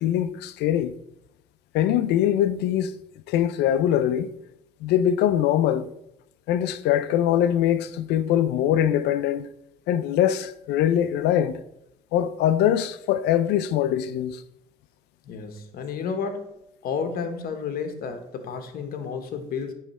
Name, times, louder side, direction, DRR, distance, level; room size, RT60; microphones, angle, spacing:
voice 1, 0.0-0.9 1.7-2.9 3.3-4.3 4.8-5.9 6.5-9.5 9.9-11.6 12.1-14.4, left 11 dB, 80° left, 0.4 m, -22 dB
voice 2, 15.2-16.5 16.8-19.7, left 5 dB, 60° left, 1.0 m, -31 dB
8.8 x 3.2 x 4.2 m
cardioid pair, 110°, 17 cm